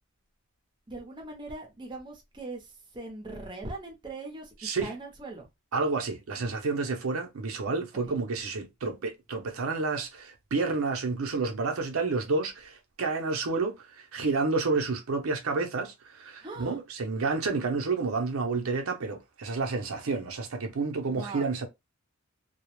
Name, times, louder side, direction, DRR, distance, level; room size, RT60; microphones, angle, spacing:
voice 1, 0.9-4.5 4.8-5.5 8.1-8.2 16.4-16.8 21.1-21.5, right 2 dB, 20° right, 0.6 m, -40 dB
voice 2, 4.6-4.9 5.7-21.7, right 4 dB, 80° right, 0.6 m, -30 dB
2.2 x 2.0 x 3.0 m
head